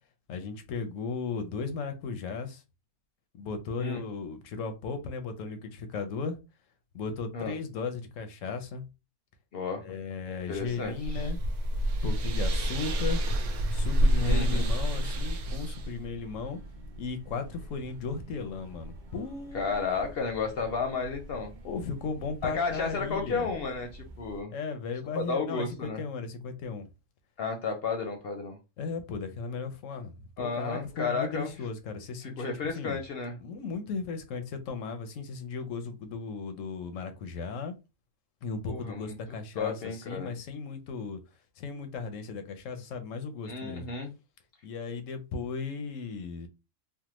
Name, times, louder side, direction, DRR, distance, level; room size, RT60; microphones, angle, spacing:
voice 1, 0.3-2.6 3.3-6.4 6.9-8.8 9.8-11.4 12.0-13.2 13.7-16.6 17.0-19.7 21.6-23.5 24.5-26.9 28.8-33.0 33.4-37.7 38.4-41.2 41.6-43.9 44.6-46.5, left 4 dB, 90° left, 1.0 m, -36 dB
voice 2, 9.5-9.8 10.5-11.3 14.2-14.6 19.5-21.5 22.4-24.5 25.1-26.0 27.4-28.6 30.4-31.5 32.2-33.4 38.7-39.2 39.6-40.3 43.4-44.1, left 4 dB, 60° left, 0.7 m, -32 dB
sound 1, 10.6-15.9, right 1 dB, 80° right, 0.9 m, -27 dB
sound 2, 12.9-24.4, equal, 50° right, 0.6 m, -47 dB
3.4 x 2.0 x 2.9 m
omnidirectional pair, 1.3 m